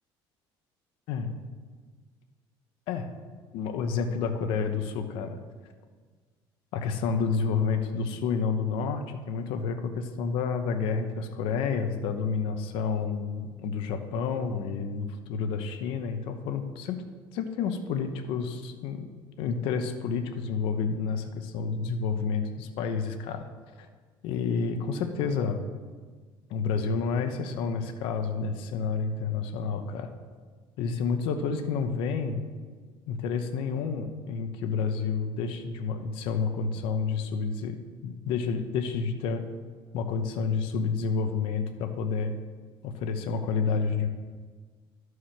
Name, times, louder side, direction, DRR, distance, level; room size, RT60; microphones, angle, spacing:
voice 1, 3.5-5.4 6.7-17.0 17.3-19.1 19.4-23.5 23.8-23.9 24.2-25.6 26.5-30.1 30.8-32.4 33.1-37.8 38.0-39.4 39.9-42.4 42.8-44.1, left 5 dB, 75° left, 7 dB, 0.9 m, -29 dB
13.0 x 4.8 x 5.9 m, 1.5 s
cardioid pair, 170°, 9 cm